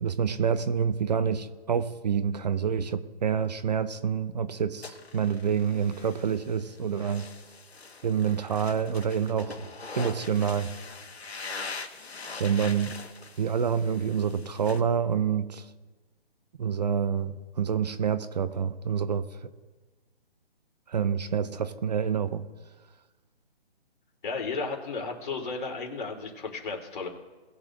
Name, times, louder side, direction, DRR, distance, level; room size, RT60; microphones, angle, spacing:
voice 1, 0.0-7.3 8.0-9.7 10.0-10.7 12.3-12.9 13.4-15.7 16.6-19.3 20.9-22.4, right 7 dB, 45° right, 12 dB, 0.6 m, -27 dB
sound 1, 4.8-14.8, left 4 dB, 85° left, 1.4 m, -42 dB
voice 2, 24.2-27.1, left 4 dB, 50° left, 1 dB, 3.2 m, -34 dB
20.5 x 7.1 x 2.5 m, 1.3 s
hypercardioid pair, 150°, 31 cm